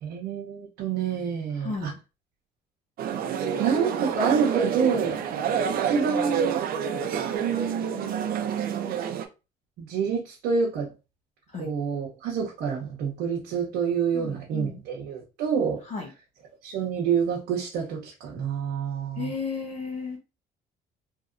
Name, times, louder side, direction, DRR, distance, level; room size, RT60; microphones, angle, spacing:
voice 1, 0.0-1.9 3.6-5.2 5.7-6.6 7.3-9.2 9.8-10.9 11.6-15.8 16.6-19.3, right 6 dB, 85° right, -3 dB, 0.8 m, -28 dB
voice 2, 1.6-2.0 11.5-11.7 14.1-14.7 15.9-16.0 19.2-20.2, left 4 dB, 45° left, -1 dB, 0.7 m, -33 dB
sound 1, 3.0-9.2, right 7 dB, 60° right, 0.5 m, -28 dB
2.9 x 2.6 x 2.5 m, 0.29 s
cardioid pair, 110°, 17 cm